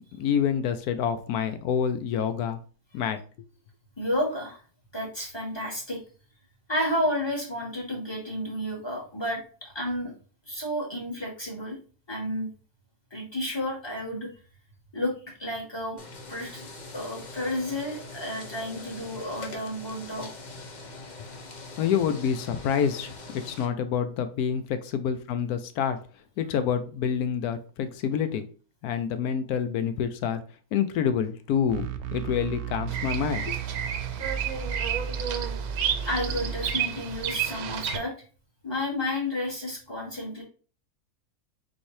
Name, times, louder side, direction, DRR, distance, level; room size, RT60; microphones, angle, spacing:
voice 1, 0.2-2.6 2.9-3.2 21.8-26.0 26.4-28.4 28.8-30.4 30.7-33.6, left 8 dB, 85° left, 10 dB, 1.1 m, -27 dB
voice 2, 4.0-4.6 4.9-6.0 6.7-10.1 10.4-11.8 12.1-12.5 13.1-14.3 14.9-15.1 15.4-16.0 16.3-16.6 16.9-20.3 36.0-38.1 38.6-40.4, left 1 dB, 20° left, -2 dB, 1.4 m, -31 dB
sound 1, 16.0-23.7, left 2 dB, 45° left, 0.6 m, -43 dB
sound 2, 31.7-36.7, right 8 dB, 65° right, 0.8 m, -34 dB
Bird vocalization bird call bird song, 32.9-38.0, right 8 dB, 85° right, 1.2 m, -31 dB
4.0 x 3.9 x 3.1 m, 0.38 s
omnidirectional pair, 1.6 m